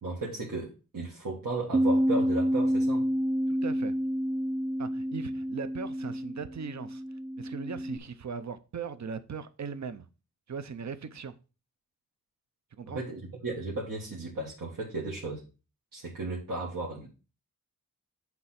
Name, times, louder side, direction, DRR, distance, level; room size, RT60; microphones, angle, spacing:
voice 1, 0.0-3.1 12.9-15.4 15.9-17.1, right 2 dB, 75° right, 1.8 m, -35 dB
Bass guitar, 1.7-8.0, equal, 25° right, 0.5 m, -29 dB
voice 2, 3.5-3.9 4.8-7.0 7.4-10.1 10.5-11.3 12.7-13.0, right 6 dB, 55° right, 0.7 m, -39 dB
8.2 x 3.4 x 5.8 m
wide cardioid pair, 60°, 34 cm